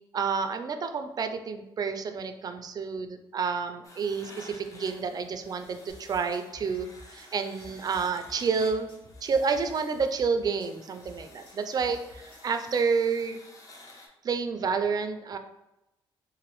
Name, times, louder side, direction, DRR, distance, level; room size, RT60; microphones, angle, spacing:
voice 1, 0.1-8.9 9.2-13.4 14.2-15.4, right 5 dB, 40° right, 7 dB, 0.4 m, -29 dB
sound 1, 3.8-14.1, left 2 dB, 35° left, 0.8 m, -52 dB
sound 2, 5.9-12.5, left 2 dB, 60° left, 1.3 m, -50 dB
3.9 x 2.5 x 3.0 m, 0.94 s
cardioid pair, 100°, 10 cm